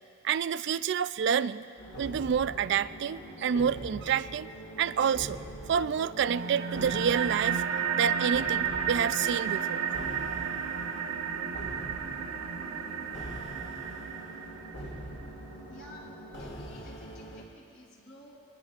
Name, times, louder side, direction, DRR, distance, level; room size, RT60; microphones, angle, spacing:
voice 1, 0.2-1.7 2.0-4.5 4.8-5.4 5.7-7.6 8.0-9.8, right 7 dB, 55° right, 15 dB, 0.3 m, -28 dB
sound 1, 1.8-17.4, equal, 55° left, 2.3 m, -43 dB
sound 2, 6.2-15.2, right 7 dB, 75° right, 1.0 m, -32 dB
voice 2, 15.7-18.4, left 1 dB, 80° left, -4 dB, 4.2 m, -51 dB
23.5 x 20.0 x 2.4 m, 2.4 s
head